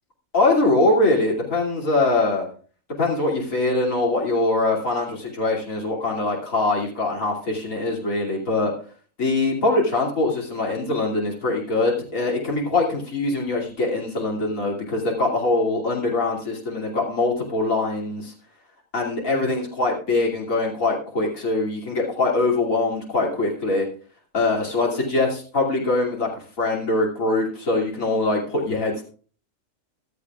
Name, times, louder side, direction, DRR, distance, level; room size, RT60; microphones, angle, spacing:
voice 1, 0.3-2.5 3.0-8.7 9.2-18.3 18.9-23.9 24.3-26.3 26.6-29.1, left 2 dB, 75° left, -3 dB, 3.1 m, -23 dB
15.0 x 13.5 x 2.4 m, 0.40 s
omnidirectional pair, 1.4 m